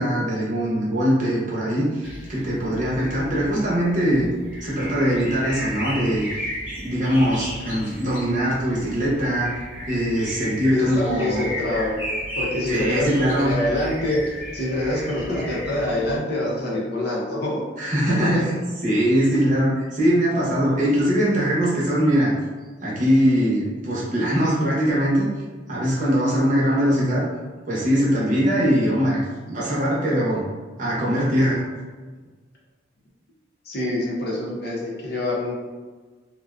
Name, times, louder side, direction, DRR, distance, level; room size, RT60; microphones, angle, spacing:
voice 1, 0.0-4.3 4.6-6.3 6.8-9.5 9.9-11.4 12.7-13.5 17.8-18.6 18.8-22.3 22.8-25.3 25.7-27.2 27.7-29.2 29.5-30.4 30.8-31.6, equal, 45° right, -6 dB, 0.7 m, -21 dB
sound 1, 2.0-16.2, equal, 10° right, 0.7 m, -35 dB
voice 2, 10.7-12.0 12.4-17.6 18.3-18.4 33.6-35.5, left 1 dB, 60° left, -4 dB, 0.6 m, -25 dB
2.5 x 2.2 x 2.3 m, 1.4 s
head